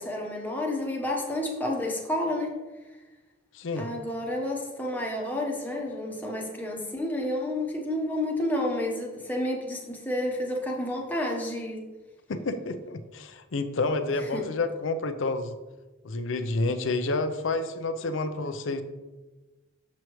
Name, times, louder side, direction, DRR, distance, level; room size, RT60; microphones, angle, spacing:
voice 1, 0.0-2.6 3.8-11.9 14.3-14.5, left 1 dB, 10° left, -1 dB, 0.9 m, -30 dB
voice 2, 3.5-3.9 12.3-15.5 16.0-18.8, left 3 dB, 70° left, 10 dB, 0.6 m, -29 dB
6.8 x 6.2 x 3.1 m, 1.2 s
head